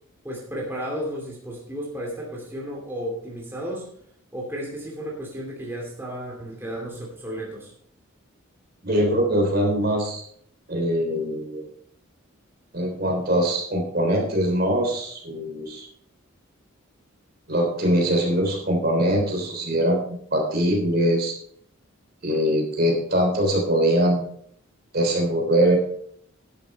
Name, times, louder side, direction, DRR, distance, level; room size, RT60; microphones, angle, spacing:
voice 1, 0.2-3.9 4.3-7.7, equal, 10° right, -3 dB, 2.8 m, -33 dB
voice 2, 8.8-10.2 10.7-11.7 12.7-15.8 17.5-21.3 22.2-24.3 24.9-25.8, equal, 45° right, 2 dB, 3.4 m, -22 dB
11.5 x 10.5 x 4.2 m, 0.63 s
head